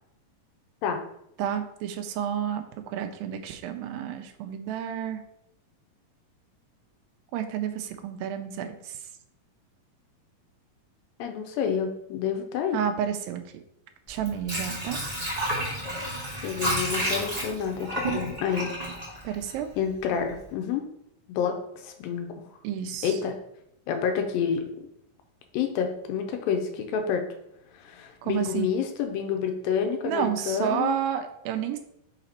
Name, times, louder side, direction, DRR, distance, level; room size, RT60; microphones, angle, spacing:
voice 1, 1.4-5.2 7.3-9.0 12.7-13.4 14.1-15.0 19.2-19.7 22.6-23.2 28.2-28.8 30.1-31.8, right 9 dB, 85° right, 7 dB, 2.3 m, -30 dB
voice 2, 11.2-12.8 16.4-18.7 19.8-20.8 21.3-21.6 21.8-22.3 23.0-23.4 23.9-24.6 25.5-27.2 27.8-31.0, left 7 dB, 90° left, 5 dB, 2.5 m, -28 dB
Water / Sink (filling or washing), 14.1-20.0 20.3-20.4, right 1 dB, 20° right, 0.9 m, -31 dB
5.8 x 4.1 x 4.2 m, 0.78 s
omnidirectional pair, 4.0 m